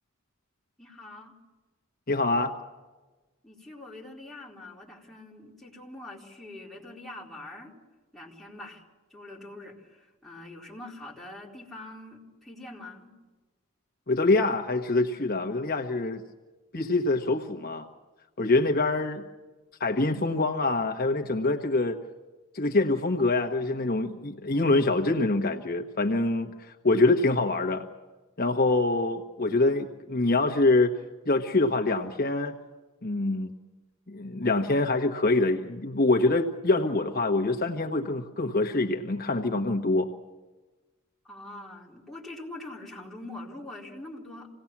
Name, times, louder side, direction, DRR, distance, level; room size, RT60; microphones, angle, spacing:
voice 1, 0.8-1.3 3.4-7.7 8.1-8.8 9.1-13.1 41.2-44.5, left 2 dB, ahead, -5 dB, 4.3 m, -44 dB
voice 2, 2.1-2.5 14.1-16.2 16.7-17.9 18.4-19.3 19.8-22.0 22.5-27.9 28.4-30.9 31.2-32.6 33.0-33.5 34.1-40.1, left 2 dB, 45° left, 3 dB, 1.2 m, -25 dB
27.0 x 18.5 x 7.3 m, 1.2 s
head